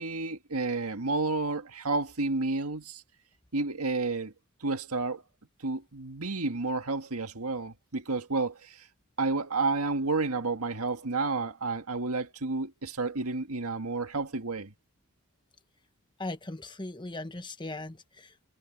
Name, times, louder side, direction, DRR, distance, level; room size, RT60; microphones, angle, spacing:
voice 1, 0.0-3.0 3.5-4.3 4.6-5.2 5.6-8.9 9.2-14.7, right 3 dB, 80° right, 1.8 m, -31 dB
voice 2, 16.2-18.5, left 2 dB, 20° left, 1.3 m, -39 dB
head